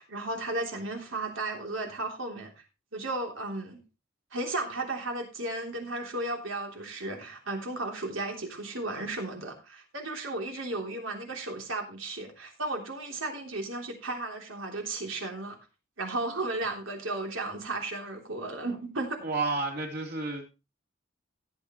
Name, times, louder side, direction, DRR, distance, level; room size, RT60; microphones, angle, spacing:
voice 1, 0.0-2.5 2.9-3.8 4.3-15.6 16.0-19.2, right 2 dB, 85° right, 3.3 m, -34 dB
voice 2, 19.2-20.5, right 3 dB, 55° right, 3.7 m, -31 dB
16.0 x 8.5 x 3.1 m
head